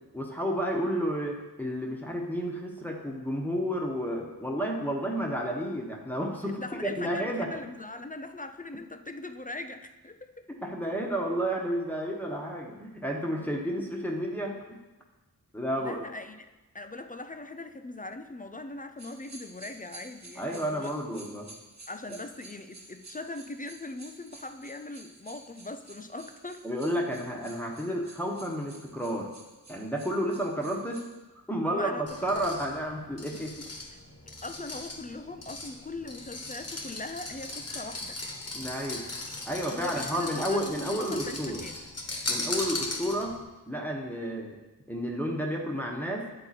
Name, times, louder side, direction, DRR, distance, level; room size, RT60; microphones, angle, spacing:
voice 1, 0.1-7.5 10.6-14.6 15.5-16.0 20.4-21.5 26.6-29.3 29.7-31.0 31.5-33.5 38.5-39.0 39.4-41.6 42.3-43.4 43.7-44.6 44.9-46.3, equal, 5° left, -1 dB, 1.1 m, -31 dB
voice 2, 6.5-10.5 15.8-16.5 16.7-21.0 21.9-26.7 31.7-32.2 33.3-34.0 34.3-38.2 39.7-41.8, left 2 dB, 20° left, 8 dB, 0.4 m, -41 dB
sound 1, 19.0-31.2, right 2 dB, 45° right, 1.1 m, -52 dB
sound 2, 32.1-43.4, left 2 dB, 40° left, 1.2 m, -38 dB
8.9 x 3.7 x 4.2 m, 1.1 s
wide cardioid pair, 50°, 39 cm